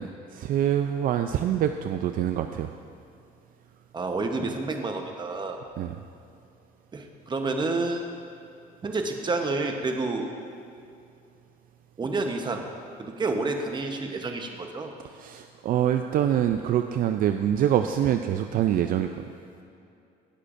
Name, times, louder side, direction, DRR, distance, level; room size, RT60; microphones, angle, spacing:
voice 1, 0.0-2.7 5.8-6.0 15.1-19.2, right 10 dB, 55° right, 7 dB, 0.4 m, -25 dB
voice 2, 3.9-5.6 6.9-8.1 8.8-10.3 12.0-12.7 13.0-15.0, right 3 dB, 25° right, 4 dB, 0.9 m, -29 dB
18.5 x 6.6 x 2.6 m, 2.6 s
cardioid pair, 110°, 17 cm